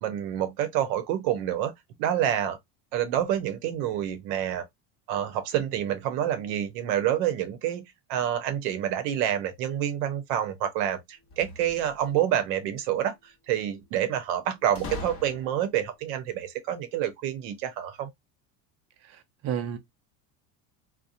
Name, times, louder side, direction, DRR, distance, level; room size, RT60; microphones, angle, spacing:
voice 1, 0.0-1.7 2.0-2.6 2.9-4.6 5.1-7.8 8.1-13.1 13.5-18.1, right 10 dB, 70° right, 0.8 m, -28 dB
sound 1, 11.2-12.3 14.8-15.8, left 3 dB, 30° left, 0.8 m, -40 dB
voice 2, 19.0-19.8, right 9 dB, 35° right, 0.5 m, -32 dB
2.7 x 2.1 x 2.4 m
supercardioid pair, 100°, 48 cm